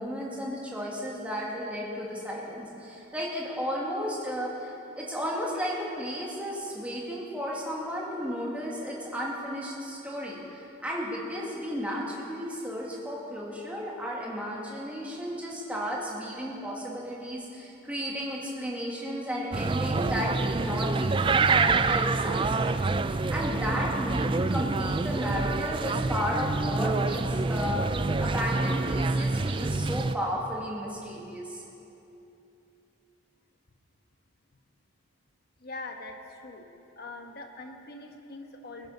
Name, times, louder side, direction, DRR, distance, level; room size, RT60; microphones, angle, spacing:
voice 1, 0.0-22.9 23.3-31.6, equal, 5° right, -4 dB, 2.2 m, -34 dB
sound 1, 19.5-30.2, right 3 dB, 25° right, 0.3 m, -27 dB
voice 2, 35.6-36.7 37.0-38.9, left 2 dB, 50° left, 3 dB, 1.3 m, -42 dB
20.5 x 9.5 x 5.6 m, 2.9 s
head